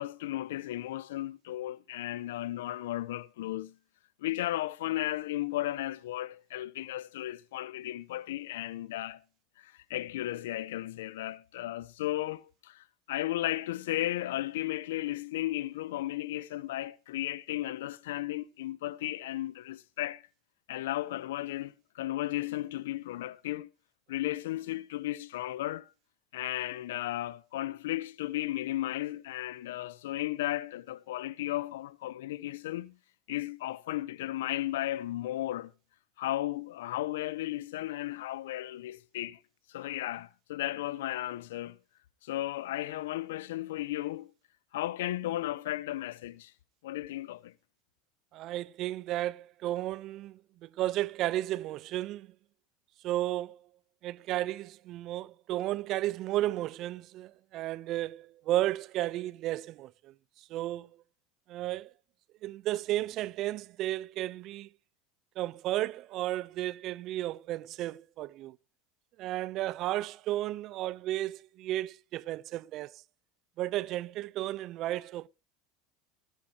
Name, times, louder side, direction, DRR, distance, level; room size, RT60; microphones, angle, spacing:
voice 1, 0.0-3.8 4.2-9.2 9.6-20.2 20.7-23.7 24.1-25.9 26.3-33.0 33.3-35.7 36.2-39.4 39.7-41.8 42.2-44.3 44.7-46.5 46.8-47.5, left 15 dB, 85° left, 0.8 m, -35 dB
voice 2, 48.3-52.3 53.0-53.6 54.0-60.9 61.5-61.9 62.4-64.7 65.4-68.6 69.2-73.0 73.6-75.3, right 15 dB, 55° right, 0.7 m, -33 dB
19.0 x 10.0 x 2.9 m
supercardioid pair, 110°, 0 cm